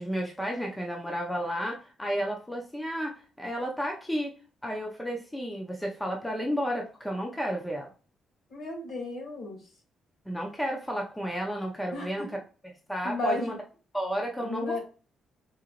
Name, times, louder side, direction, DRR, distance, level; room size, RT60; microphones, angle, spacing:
voice 1, 0.0-4.3 4.6-7.9 10.3-12.3 12.6-13.5 13.9-14.8, equal, 5° left, 0 dB, 0.5 m, -32 dB
voice 2, 8.5-9.6 11.9-12.3 13.0-13.6 14.4-14.8, left 2 dB, 70° left, 0 dB, 1.8 m, -33 dB
3.8 x 2.8 x 2.9 m, 0.37 s
cardioid pair, 160°, 0 cm